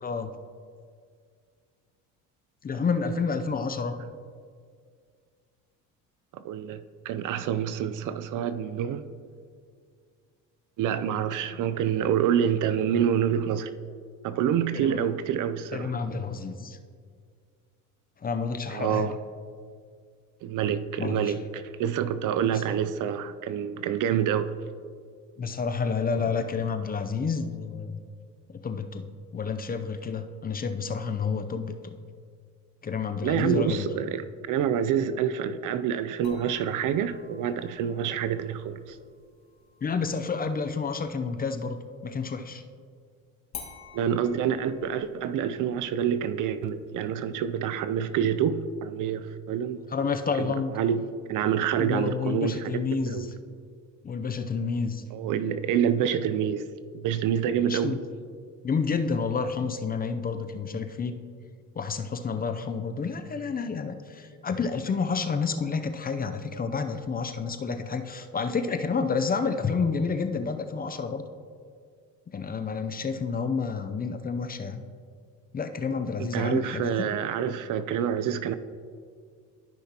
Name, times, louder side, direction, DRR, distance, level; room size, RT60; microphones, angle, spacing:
voice 1, 0.0-0.3 2.6-4.0 14.7-15.1 15.7-16.8 18.2-19.1 21.0-21.3 22.4-22.6 25.4-28.0 28.5-31.9 32.8-33.9 39.8-41.8 42.0-42.6 49.9-50.7 51.8-53.3 54.0-55.0 57.7-58.0 58.6-61.2 61.8-71.2 72.3-74.8 75.5-77.1, left 5 dB, 25° left, 8 dB, 0.6 m, -29 dB
voice 2, 6.3-9.1 10.8-13.7 14.2-15.9 18.7-19.2 20.4-24.5 33.2-34.2 34.5-39.0 43.9-49.8 50.4-51.0 51.3-53.3 55.1-56.7 56.9-58.0 76.2-78.5, right 8 dB, 60° right, 12 dB, 0.5 m, -27 dB
sound 1, 36.2-41.8 43.5-48.5, left 5 dB, 50° left, 2.0 m, -50 dB
13.5 x 5.8 x 2.9 m, 2.1 s
supercardioid pair, 80°, 36 cm